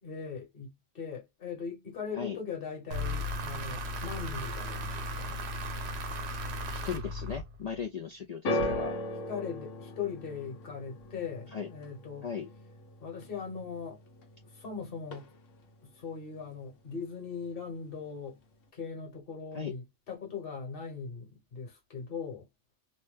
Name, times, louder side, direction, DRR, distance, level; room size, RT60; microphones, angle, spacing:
voice 1, 0.0-5.4 9.3-12.3 13.0-14.0 14.4-15.3 15.8-18.4 18.7-22.5, left 6 dB, 50° left, 1.3 m, -40 dB
sound 1, 2.9-7.8, left 1 dB, 65° right, 0.9 m, -36 dB
voice 2, 6.7-8.9 11.5-11.7 12.2-12.5 19.5-19.7, left 6 dB, 70° left, 0.3 m, -37 dB
sound 2, 8.4-14.7 15.0-15.7 16.4-16.5, left 1 dB, 85° left, 1.1 m, -38 dB
2.7 x 2.1 x 3.2 m
omnidirectional pair, 1.2 m